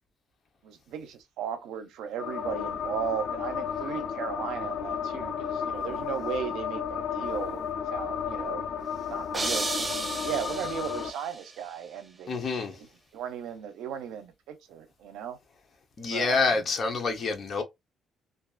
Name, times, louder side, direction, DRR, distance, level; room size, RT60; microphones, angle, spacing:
voice 1, 0.6-8.6 9.1-15.4 16.1-16.7, right 8 dB, 90° right, 0.5 m, -36 dB
sound 1, 2.2-11.1, left 7 dB, 75° left, 0.4 m, -33 dB
sound 2, 9.3-11.4, right 3 dB, 20° right, 0.4 m, -33 dB
voice 2, 12.3-12.7 16.0-17.6, left 4 dB, 50° left, 0.8 m, -27 dB
2.5 x 2.3 x 2.3 m
cardioid pair, 90°, 0 cm